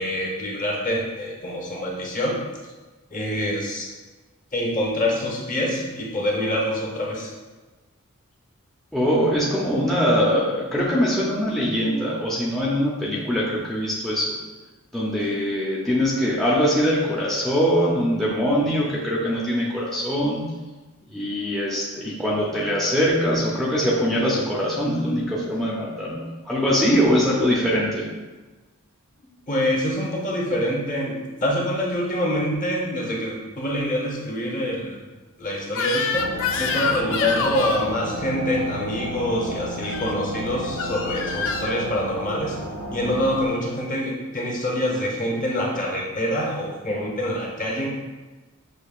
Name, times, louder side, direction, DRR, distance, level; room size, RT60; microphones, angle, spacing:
voice 1, 0.0-2.4 3.1-3.9 4.5-7.3 15.1-15.5 29.5-31.1 31.4-35.0 35.4-36.3 36.6-42.6 42.9-47.9, equal, 40° left, -3 dB, 0.9 m, -26 dB
voice 2, 8.9-14.4 14.9-20.5 21.1-28.1, equal, ahead, -6 dB, 0.5 m, -22 dB
Crying sobbing / Screech, 35.7-37.9 39.8-40.1 40.8-41.8, left 5 dB, 60° left, 0.4 m, -26 dB
sound 1, 36.1-43.5, right 1 dB, 85° right, 0.5 m, -32 dB
6.4 x 2.7 x 2.4 m, 1.2 s
head